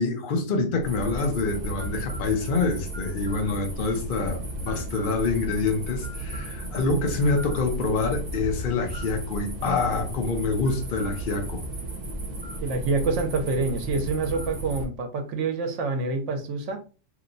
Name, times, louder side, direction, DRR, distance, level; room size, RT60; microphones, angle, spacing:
voice 1, 0.0-11.6, left 3 dB, 50° left, 0.7 m, -26 dB
sound 1, 0.8-14.8, right 1 dB, 40° right, 0.8 m, -34 dB
voice 2, 12.6-16.8, right 3 dB, 70° right, 1.0 m, -27 dB
2.9 x 2.2 x 3.8 m
omnidirectional pair, 1.3 m